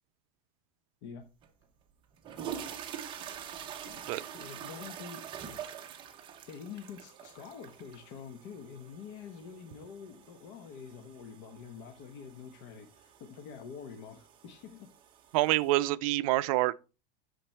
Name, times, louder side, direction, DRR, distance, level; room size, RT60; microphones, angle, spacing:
sound 1, 1.4-1.5 2.1-15.8, right 9 dB, 25° right, 0.9 m, -46 dB
voice 1, 4.3-5.6 6.5-14.9, left 6 dB, 50° left, 1.1 m, -46 dB
voice 2, 15.3-16.7, right 17 dB, 60° right, 0.5 m, -26 dB
9.0 x 7.1 x 3.3 m
supercardioid pair, 165°, 20 cm